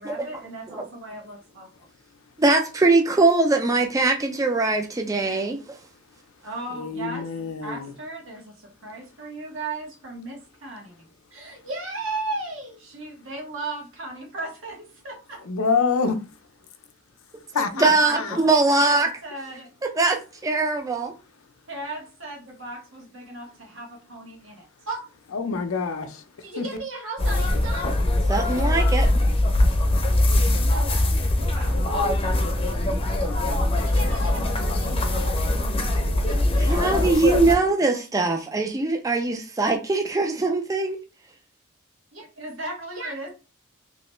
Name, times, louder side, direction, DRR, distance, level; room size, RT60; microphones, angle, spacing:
voice 1, 0.0-1.7 6.4-7.2 7.6-10.9 11.3-15.4 17.5-19.7 21.7-25.0 26.4-27.9 28.4-28.7 30.6-31.7 32.7-32.8 33.7-35.6 36.2-37.1 37.5-38.0 42.1-43.3, right 2 dB, 65° right, 1.3 m, -36 dB
voice 2, 2.4-5.8 17.8-19.1 19.9-21.1 28.3-29.1 36.6-41.0, right 3 dB, 15° right, 0.4 m, -22 dB
voice 3, 6.7-7.9 15.5-16.1 17.5-18.2 25.3-26.2 26.6-26.7, left 5 dB, 80° left, 0.6 m, -26 dB
sound 1, 27.2-37.5, left 1 dB, 25° left, 0.7 m, -22 dB
3.1 x 3.0 x 3.0 m
head